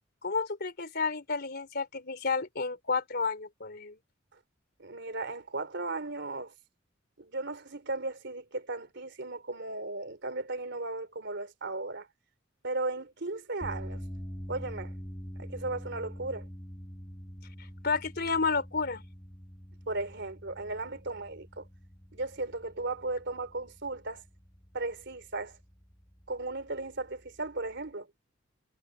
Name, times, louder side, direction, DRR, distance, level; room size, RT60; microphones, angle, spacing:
voice 1, 0.2-4.0 17.6-19.0, left 4 dB, 55° left, 3.5 m, -31 dB
voice 2, 4.8-6.5 7.2-12.1 12.6-14.0 14.5-14.9 15.4-16.5 19.9-21.7 22.1-24.2 24.7-25.6 26.3-28.1, right 2 dB, 65° right, 3.6 m, -36 dB
sound 1, 13.6-27.9, equal, 15° left, 3.0 m, -45 dB
head